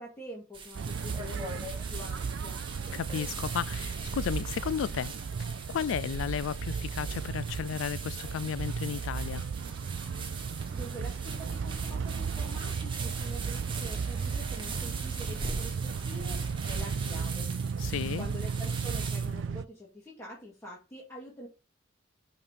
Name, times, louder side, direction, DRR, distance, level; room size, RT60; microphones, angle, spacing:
voice 1, 0.0-2.6 10.4-17.5 17.8-21.5, equal, 15° left, 2.0 m, -46 dB
sound 1, 0.5-19.5, right 4 dB, 25° right, 1.5 m, -42 dB
sound 2, 0.8-19.7, right 5 dB, 65° right, 0.4 m, -35 dB
voice 2, 2.9-5.1 5.7-9.5 17.8-18.2, left 7 dB, 75° left, 0.3 m, -33 dB
sound 3, 9.6-17.3, right 2 dB, 50° right, 1.9 m, -60 dB
5.6 x 5.3 x 4.4 m
head